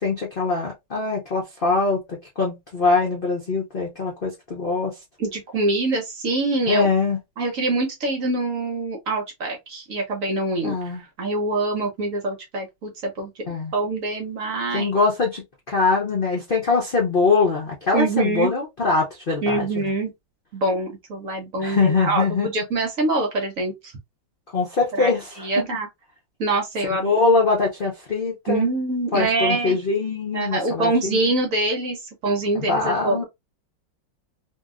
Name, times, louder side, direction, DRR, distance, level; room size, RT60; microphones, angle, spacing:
voice 1, 0.0-5.0 6.7-7.2 10.6-11.0 13.4-13.7 14.7-19.8 21.6-22.5 24.5-25.3 27.0-28.7 29.1-31.2 32.5-33.2, left 4 dB, 85° left, 0.4 m, -23 dB
voice 2, 5.2-6.9 7.4-10.8 11.2-14.9 17.9-18.5 19.4-20.1 20.5-23.9 25.0-25.1 25.4-25.9 26.4-27.1 28.5-29.8 30.3-33.2, right 2 dB, 55° right, 1.0 m, -25 dB
2.9 x 2.7 x 2.4 m
omnidirectional pair, 2.1 m